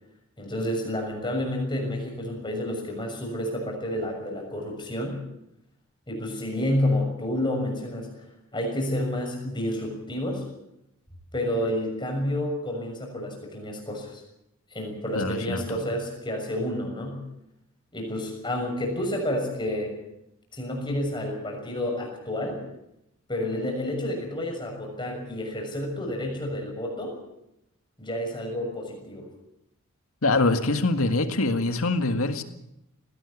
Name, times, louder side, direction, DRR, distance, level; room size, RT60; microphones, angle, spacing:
voice 1, 0.4-5.2 6.1-8.1 8.5-10.4 11.3-14.2 14.7-17.2 17.9-19.9 20.5-22.6 23.3-27.1 28.0-29.3, left 1 dB, 20° left, 2 dB, 6.4 m, -30 dB
voice 2, 15.1-15.8 30.2-32.4, left 2 dB, 80° left, 7 dB, 1.9 m, -24 dB
20.0 x 17.5 x 8.3 m, 0.83 s
head